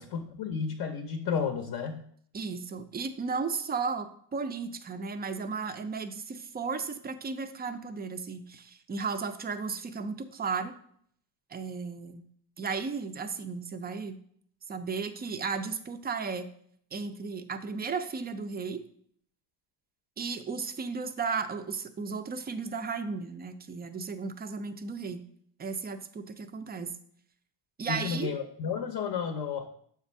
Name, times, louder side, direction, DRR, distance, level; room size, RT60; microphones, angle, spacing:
voice 1, 0.0-2.1 27.9-29.7, left 6 dB, 45° left, 4 dB, 0.7 m, -32 dB
voice 2, 2.3-10.7 11.5-12.3 12.6-14.2 14.7-16.5 16.9-18.8 20.2-25.3 25.6-27.0 27.8-28.3, right 5 dB, 20° right, 8 dB, 0.4 m, -34 dB
7.1 x 2.6 x 5.3 m, 0.64 s
cardioid pair, 105°, 49 cm